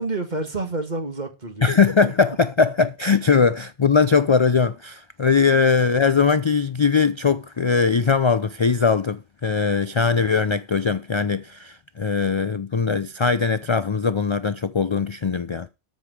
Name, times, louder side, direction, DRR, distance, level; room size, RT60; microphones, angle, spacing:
voice 1, 0.0-1.8 2.0-2.1, right 2 dB, 45° right, 1.9 m, -29 dB
voice 2, 1.6-15.7, left 5 dB, 40° left, 0.4 m, -20 dB
13.0 x 5.2 x 6.1 m
omnidirectional pair, 1.1 m